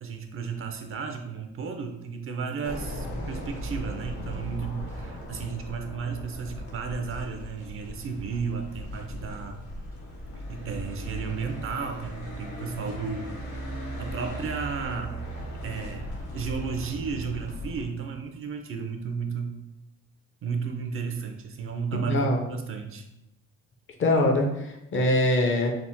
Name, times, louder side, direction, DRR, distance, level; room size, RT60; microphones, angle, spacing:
voice 1, 0.0-9.6 10.5-13.4 14.0-15.1 15.6-16.1 16.3-19.6 20.4-23.1, right 5 dB, 45° right, 5 dB, 0.4 m, -33 dB
sound 1, 2.6-17.8, equal, 70° left, 1.0 m, -37 dB
voice 2, 21.9-22.4 24.0-25.7, left 1 dB, 40° left, 1 dB, 0.5 m, -23 dB
3.4 x 2.0 x 2.6 m, 0.88 s
cardioid pair, 90°, 30 cm